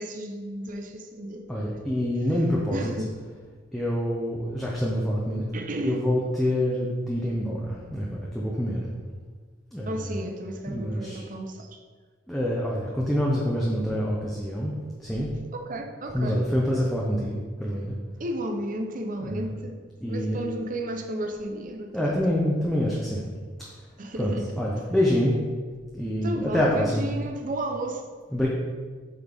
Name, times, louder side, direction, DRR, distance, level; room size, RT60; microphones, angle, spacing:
voice 1, 0.0-1.7 2.7-3.1 5.5-6.1 9.8-11.8 15.5-16.4 18.2-19.8 20.1-22.2 24.0-24.6 26.2-28.0, right 1 dB, 45° right, 5 dB, 0.7 m, -33 dB
voice 2, 1.5-2.9 3.7-5.4 5.8-8.8 9.7-9.9 10.7-11.2 12.3-14.7 15.0-15.3 16.1-17.9 19.2-19.4 20.0-20.4 21.9-23.2 24.2-25.4 25.9-27.1 28.3-28.5, equal, ahead, -5 dB, 0.7 m, -26 dB
8.3 x 4.2 x 3.5 m, 1.5 s
head